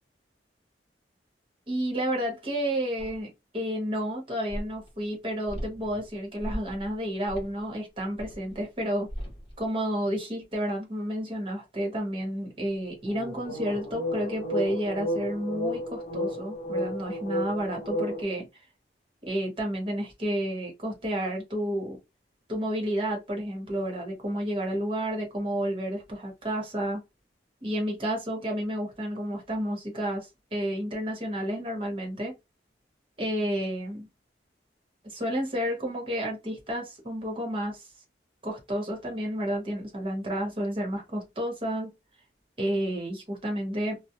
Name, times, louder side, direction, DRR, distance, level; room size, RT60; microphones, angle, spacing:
voice 1, 1.7-9.1 9.6-18.5 19.2-22.0 22.5-27.0 27.6-32.3 33.2-34.1 35.0-37.8 38.4-41.9 42.6-44.0, equal, 30° right, 1.0 m, -31 dB
sound 1, 3.0-3.1 4.5-4.6 5.5-6.0 6.4-6.9 7.3-7.5 8.2-8.3 9.1-9.4 13.1-18.2, equal, 35° left, 1.0 m, -32 dB
2.4 x 2.1 x 2.8 m
head